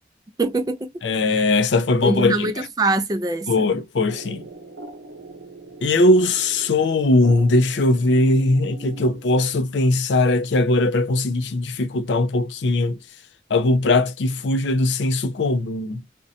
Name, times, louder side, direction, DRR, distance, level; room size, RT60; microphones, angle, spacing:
voice 1, 0.4-0.9 2.0-3.7, right 2 dB, 20° right, 0.3 m, -23 dB
voice 2, 1.0-2.7 3.5-4.4 5.8-13.0 13.5-16.0, left 2 dB, 90° left, 0.5 m, -20 dB
sound 1, 4.1-9.6, right 3 dB, 85° right, 0.7 m, -41 dB
2.6 x 2.1 x 2.6 m
head